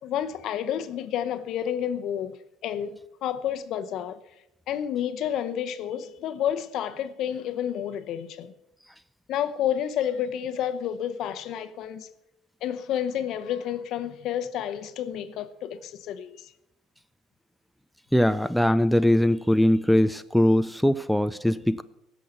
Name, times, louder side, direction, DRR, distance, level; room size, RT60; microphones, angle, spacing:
voice 1, 0.0-2.4 2.6-4.2 4.7-8.5 9.3-12.1 12.6-16.5, left 9 dB, 65° left, 0.9 m, -30 dB
voice 2, 18.1-21.8, left 1 dB, ahead, 0.4 m, -21 dB
16.5 x 6.4 x 6.7 m
cardioid pair, 120°, 0 cm